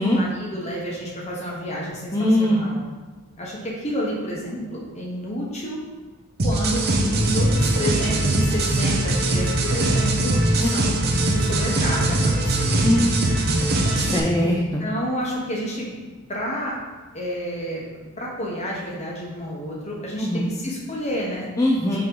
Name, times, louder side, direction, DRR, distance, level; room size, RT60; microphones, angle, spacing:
voice 1, 0.0-2.8 3.4-5.8 6.4-12.8 14.4-14.5 14.8-16.7 17.1-21.5, equal, 30° left, -3 dB, 1.2 m, -30 dB
voice 2, 2.1-2.6 10.6-10.7 12.8-13.1 13.9-14.8 20.2-20.4 21.6-22.1, left 1 dB, 15° left, -4 dB, 0.5 m, -21 dB
sound 1, 6.4-14.2, right 1 dB, 45° right, 0.7 m, -21 dB
5.8 x 3.2 x 5.4 m, 1.3 s
head